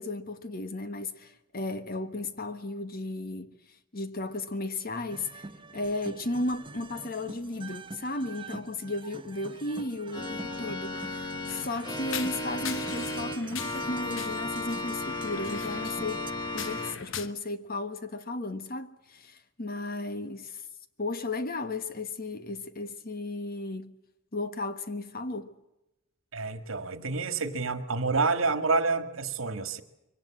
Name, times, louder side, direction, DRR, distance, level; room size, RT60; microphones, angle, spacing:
voice 1, 0.0-3.5 3.9-5.4 5.7-16.3 16.5-20.6 21.0-23.9 24.3-25.5, left 2 dB, 45° left, 1.4 m, -35 dB
sound 1, 5.1-16.3, right 3 dB, 25° right, 1.0 m, -46 dB
Organ, 10.1-17.0, left 2 dB, 20° left, 1.8 m, -35 dB
sound 2, 11.5-17.3, left 7 dB, 70° left, 1.1 m, -41 dB
voice 2, 26.3-29.8, right 4 dB, 70° right, 1.8 m, -28 dB
23.5 x 18.5 x 7.5 m
head